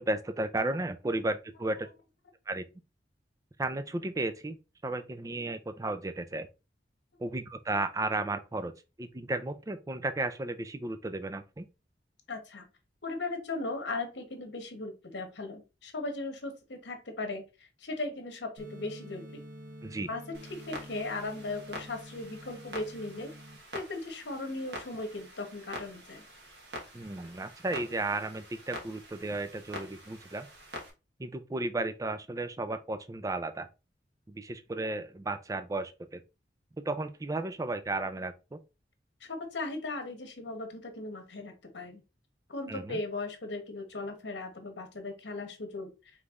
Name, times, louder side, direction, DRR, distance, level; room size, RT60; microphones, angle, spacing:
voice 1, 0.0-1.9 2.5-2.6 3.6-4.6 4.8-6.5 7.2-8.7 9.0-11.7 19.8-20.1 26.9-30.5 31.2-33.7 34.3-36.2 36.8-38.6 42.7-43.0, right 2 dB, 20° right, 0.3 m, -34 dB
voice 2, 12.3-12.6 13.0-19.4 20.1-20.2 20.7-23.3 23.7-26.2 39.2-42.0 42.5-45.9, left 2 dB, 80° left, 1.0 m, -37 dB
sound 1, 18.6-23.6, equal, 90° right, 0.9 m, -48 dB
Clock, 20.3-30.9, equal, 70° right, 1.3 m, -46 dB
5.2 x 3.3 x 2.4 m
head